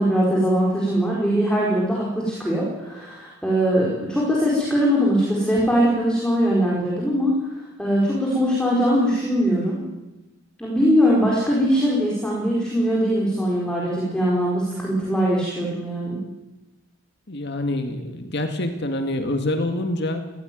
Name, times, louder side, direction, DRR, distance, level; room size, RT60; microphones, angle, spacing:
voice 1, 0.0-7.4 7.8-9.8 10.6-16.2, equal, 5° left, -5 dB, 4.8 m, -21 dB
voice 2, 17.3-20.3, left 1 dB, 55° left, 6 dB, 2.1 m, -26 dB
20.5 x 17.0 x 9.3 m, 1.1 s
head